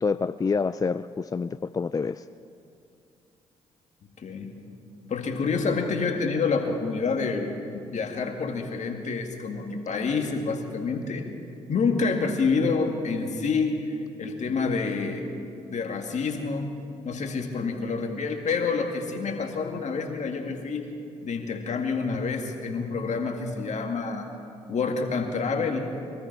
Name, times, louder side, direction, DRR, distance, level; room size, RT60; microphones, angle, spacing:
voice 1, 0.0-2.3, left 5 dB, 25° left, 13 dB, 0.3 m, -27 dB
voice 2, 4.2-4.5 5.1-11.3 11.7-15.2 15.7-16.7 17.0-20.9 21.2-24.3 24.7-25.9, left 4 dB, 55° left, 3 dB, 2.0 m, -28 dB
22.5 x 13.5 x 4.6 m, 2.6 s
hypercardioid pair, 50°, 14 cm